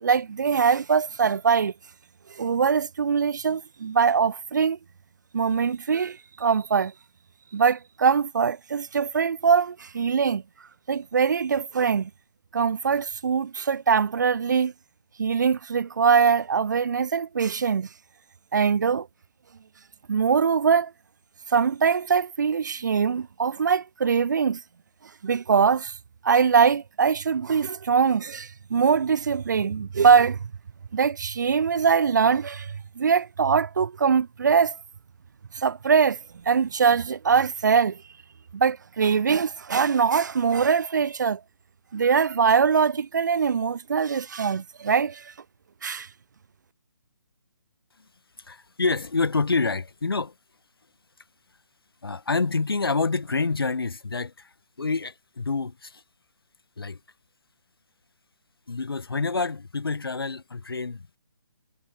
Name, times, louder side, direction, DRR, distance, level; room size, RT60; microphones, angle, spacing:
voice 1, 0.0-1.7 2.3-4.8 5.3-6.9 7.5-10.4 10.9-12.1 12.5-14.7 15.2-17.9 18.5-19.1 20.1-20.9 21.5-24.6 25.2-26.0 26.2-30.4 30.9-34.8 35.5-36.2 36.5-38.0 38.5-41.4 41.9-45.3 45.8-46.1, right 6 dB, 50° right, 0.4 m, -22 dB
voice 2, 48.4-50.3 52.0-56.0 56.8-57.0 58.7-61.1, left 4 dB, 65° left, 1.4 m, -27 dB
figure-of-eight pair, 140°, 13 cm